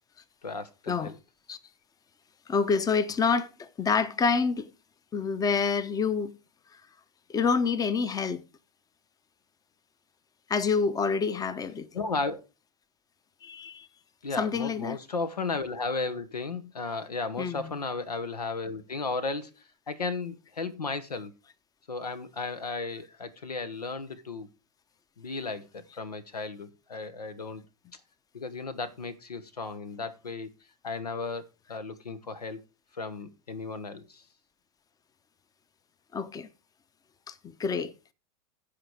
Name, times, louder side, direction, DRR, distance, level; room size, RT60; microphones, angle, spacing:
voice 1, 0.4-1.2 11.9-12.4 14.2-19.5 19.9-21.3 21.9-24.5 25.2-27.6 28.3-30.5 30.8-32.6 32.9-34.2, left 4 dB, 85° left, 1.2 m, -34 dB
voice 2, 2.5-4.7 5.1-6.3 7.3-8.4 10.5-11.9 13.4-13.9 14.4-15.0 17.4-17.7 36.1-36.5 37.3-37.9, left 5 dB, 20° left, 0.9 m, -27 dB
15.0 x 5.0 x 4.8 m
figure-of-eight pair, 95°, 20 cm